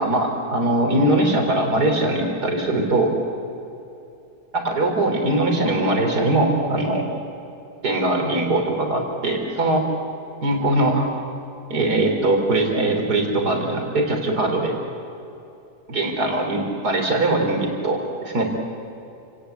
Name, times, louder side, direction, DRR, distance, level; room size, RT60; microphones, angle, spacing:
voice 1, 0.0-3.1 4.5-7.1 7.8-9.8 10.4-11.1 11.7-14.7 15.9-18.4, right 2 dB, 90° right, 2 dB, 4.3 m, -21 dB
30.0 x 18.5 x 8.2 m, 2.8 s
omnidirectional pair, 1.7 m